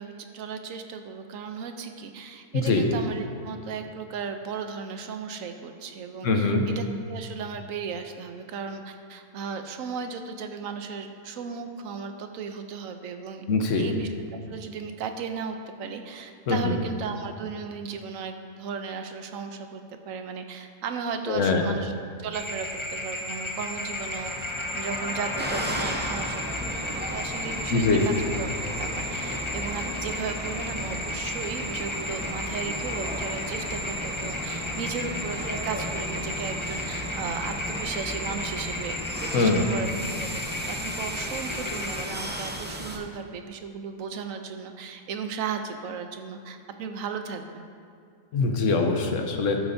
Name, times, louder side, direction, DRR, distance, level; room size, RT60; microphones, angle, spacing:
voice 1, 0.0-13.4 13.7-21.9 22.2-24.3 24.7-26.4 26.7-28.5 28.8-39.9 40.2-47.6, right 6 dB, 80° right, 6 dB, 1.1 m, -36 dB
voice 2, 2.5-2.8 6.2-6.6 13.5-13.9 16.5-16.7 21.3-21.6 27.7-28.0 39.3-39.7 48.3-49.6, left 3 dB, 70° left, 3 dB, 1.2 m, -23 dB
sound 1, 22.3-42.0, left 1 dB, 25° left, 0.8 m, -34 dB
sound 2, 25.4-43.0, equal, 10° right, 0.5 m, -35 dB
12.0 x 8.9 x 2.7 m, 2.2 s
omnidirectional pair, 1.4 m